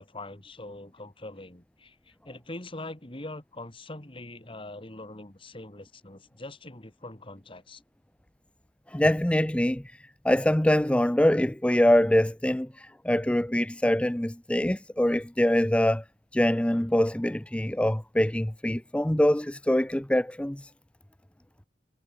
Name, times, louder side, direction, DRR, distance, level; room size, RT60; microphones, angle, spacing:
voice 1, 0.0-7.8, left 2 dB, 30° left, 2.2 m, -43 dB
voice 2, 8.9-9.8 10.2-16.0 16.3-20.7, left 1 dB, 5° left, 0.5 m, -24 dB
head